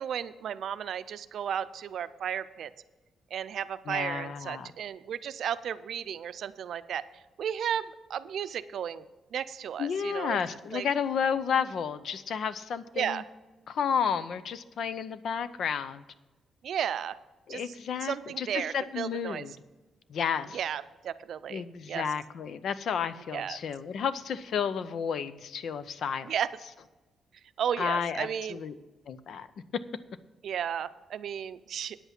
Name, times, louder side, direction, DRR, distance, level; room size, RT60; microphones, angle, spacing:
voice 1, 0.0-2.7 3.3-9.0 9.3-10.4 10.7-10.9 13.0-13.2 16.6-17.2 17.5-17.7 18.0-19.5 20.5-22.1 23.3-23.6 26.2-26.5 27.6-28.6 30.4-32.0, right 9 dB, 65° right, 13 dB, 0.5 m, -34 dB
voice 2, 3.9-4.7 9.8-13.2 13.7-16.0 17.5-19.5 20.1-20.6 21.5-26.3 27.8-28.7 29.1-29.5, left 7 dB, 65° left, 14 dB, 0.6 m, -32 dB
9.6 x 8.1 x 6.0 m, 1.1 s
cardioid pair, 130°, 0 cm